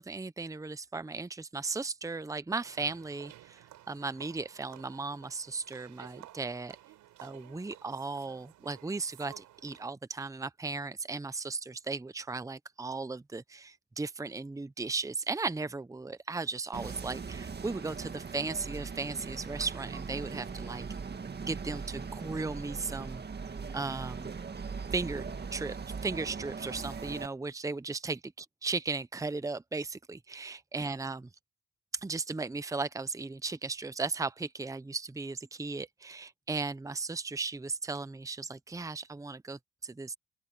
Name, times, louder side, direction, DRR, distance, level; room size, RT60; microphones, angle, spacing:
voice 1, 0.0-6.8 7.2-20.8 21.4-23.2 23.7-24.3 24.9-25.2 25.5-25.8 26.0-28.3 28.6-31.2 32.0-40.1, right 3 dB, 10° right, 0.8 m, -36 dB
sound 1, 2.6-9.9, right 14 dB, 85° right, 4.8 m, -54 dB
sound 2, 16.7-27.3, right 5 dB, 35° right, 2.0 m, -40 dB
open air
cardioid pair, 90°, 30 cm